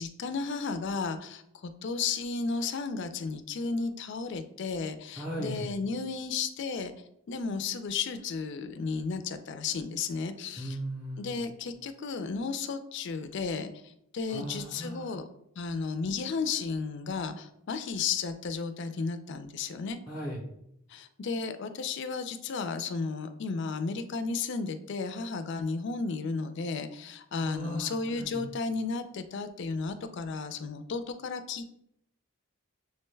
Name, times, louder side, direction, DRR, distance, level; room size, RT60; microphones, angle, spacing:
voice 1, 0.0-6.9 7.3-10.8 11.2-15.3 15.6-20.0 20.9-31.7, left 4 dB, 50° left, 10 dB, 0.3 m, -33 dB
voice 2, 5.2-5.7 10.6-11.4 14.3-15.2 20.1-20.4 27.4-28.4, right 1 dB, 5° right, -2 dB, 0.5 m, -37 dB
6.6 x 2.2 x 3.1 m, 0.77 s
head